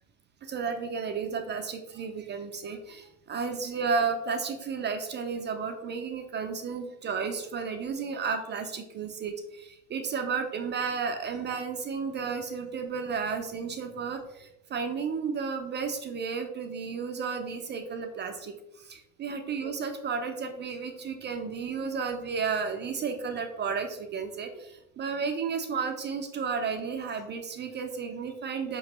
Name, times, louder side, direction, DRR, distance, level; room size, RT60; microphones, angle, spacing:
voice 1, 0.4-28.8, right 5 dB, 25° right, 6 dB, 0.4 m, -33 dB
5.1 x 3.0 x 2.9 m, 0.93 s
hypercardioid pair, 75°, 44 cm